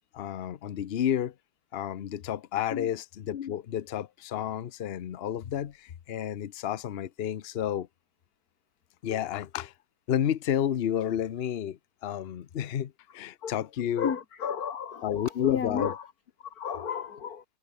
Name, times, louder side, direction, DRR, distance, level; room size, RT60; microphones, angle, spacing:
voice 1, 0.1-1.3 1.7-7.9 9.0-9.7 10.1-14.1 15.0-15.9, left 10 dB, 90° left, 0.5 m, -31 dB
voice 2, 14.0-16.1 16.4-17.4, left 7 dB, 50° left, 2.4 m, -33 dB
omnidirectional pair, 2.1 m